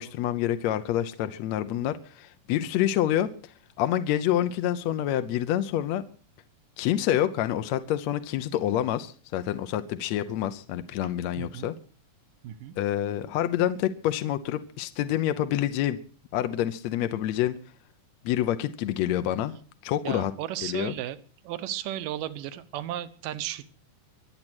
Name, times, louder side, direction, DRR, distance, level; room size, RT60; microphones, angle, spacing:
voice 1, 0.0-6.0 6.8-11.7 12.8-16.0 16.3-17.6 18.2-19.6 19.8-20.3 20.6-20.9, left 12 dB, 70° left, 10 dB, 1.8 m, -27 dB
voice 2, 11.4-11.7 12.4-12.8 20.0-21.2 21.4-23.7, right 12 dB, 80° right, 13 dB, 2.6 m, -34 dB
24.0 x 8.6 x 6.2 m, 0.42 s
omnidirectional pair, 3.8 m